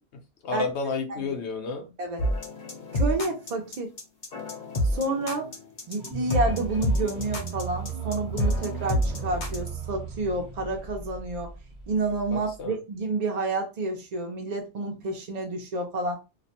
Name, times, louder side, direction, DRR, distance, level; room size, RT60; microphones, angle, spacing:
voice 1, 0.1-1.9 12.3-12.8, left 4 dB, 75° left, 0.9 m, -32 dB
sound 1, 2.2-9.7, equal, 50° left, 0.7 m, -28 dB
voice 2, 2.9-3.9 4.8-5.5 5.9-11.5 11.9-16.2, right 2 dB, 55° right, 0.4 m, -29 dB
sound 2, 6.0-12.6, right 5 dB, 40° right, 0.9 m, -37 dB
2.3 x 2.1 x 2.8 m
omnidirectional pair, 1.2 m